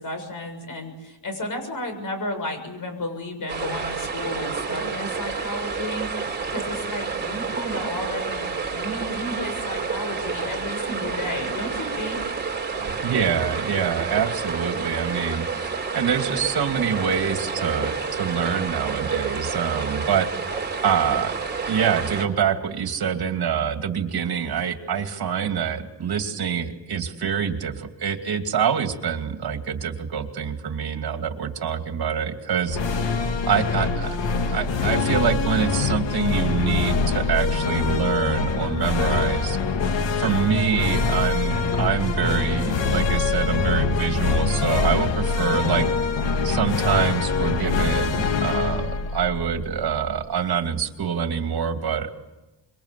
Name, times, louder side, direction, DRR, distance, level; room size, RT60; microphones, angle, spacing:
voice 1, 0.0-6.1 6.5-12.2, left 1 dB, 50° left, 6 dB, 7.0 m, -32 dB
sound 1, 3.5-22.3, right 5 dB, 25° right, 3.5 m, -29 dB
voice 2, 13.0-15.5 15.9-20.3 20.8-21.4 21.7-33.1 33.4-39.6 40.2-45.9 46.4-52.1, right 7 dB, 60° right, 6 dB, 2.6 m, -25 dB
sound 2, 32.7-50.1, left 4 dB, 90° left, 2.2 m, -24 dB
26.5 x 23.5 x 8.4 m, 1.0 s
cardioid pair, 120°, 42 cm